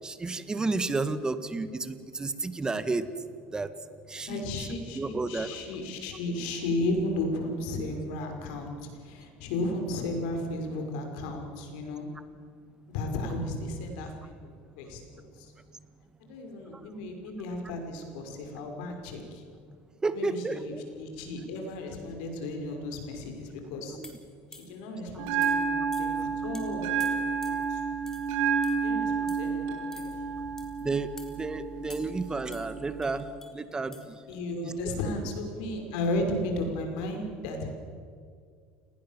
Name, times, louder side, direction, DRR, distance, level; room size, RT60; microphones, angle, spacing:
voice 1, 0.0-3.1 3.5-3.7 4.1-4.7 4.9-5.5 20.0-20.8 23.9-24.2 30.8-33.3 33.5-33.9 34.6-34.7, right 3 dB, 15° right, 12 dB, 1.8 m, -31 dB
voice 2, 4.3-12.1 12.9-14.5 14.8-15.0 15.4-15.5 16.3-19.4 20.1-24.0 24.7-27.8 28.8-30.1 34.3-37.7, left 2 dB, 80° left, 4 dB, 5.8 m, -34 dB
sound 1, 24.0-24.9 25.4-25.6 25.9-26.2 26.5-26.7 27.0-27.7 28.1-28.3 28.6-28.9 29.3-29.5 29.9-30.2 30.6-30.8 31.2-31.4 31.9-32.2 32.5-33.5 33.9-34.0, left 2 dB, 10° left, 4.0 m, -49 dB
Bell, 25.2-33.2, right 6 dB, 80° right, 5.1 m, -30 dB
29.0 x 20.5 x 7.5 m, 2.2 s
supercardioid pair, 120°, 5 cm